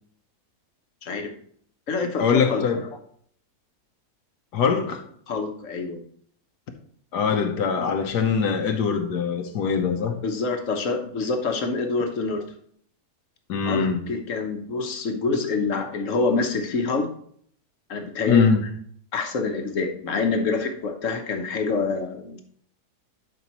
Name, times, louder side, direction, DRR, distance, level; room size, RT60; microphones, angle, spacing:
voice 1, 1.0-1.3 1.9-2.6 5.3-6.0 10.2-12.4 13.6-17.1 17.9-18.4 19.1-22.4, left 4 dB, 55° left, 1.3 m, -26 dB
voice 2, 2.2-2.9 4.5-5.0 7.1-10.2 13.5-14.0 18.3-18.7, left 6 dB, 85° left, 1.5 m, -22 dB
11.5 x 5.1 x 3.0 m
omnidirectional pair, 1.7 m